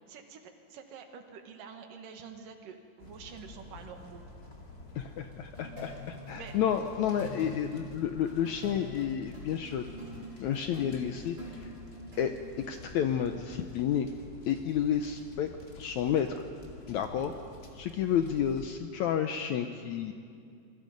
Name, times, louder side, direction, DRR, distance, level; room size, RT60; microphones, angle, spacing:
voice 1, 0.0-4.2 6.3-6.6 17.2-17.4, right 6 dB, 75° right, 5 dB, 3.0 m, -48 dB
sound 1, 3.0-18.7, left 2 dB, 30° left, 2.1 m, -50 dB
voice 2, 5.0-11.7 12.2-12.3 12.7-14.1 14.5-15.5 15.8-16.3 16.9-17.3 17.8-20.1, left 9 dB, 75° left, 6 dB, 1.8 m, -31 dB
sound 2, 5.5-12.8, equal, 20° right, 6.1 m, -45 dB
27.0 x 22.5 x 5.3 m, 2.4 s
omnidirectional pair, 4.1 m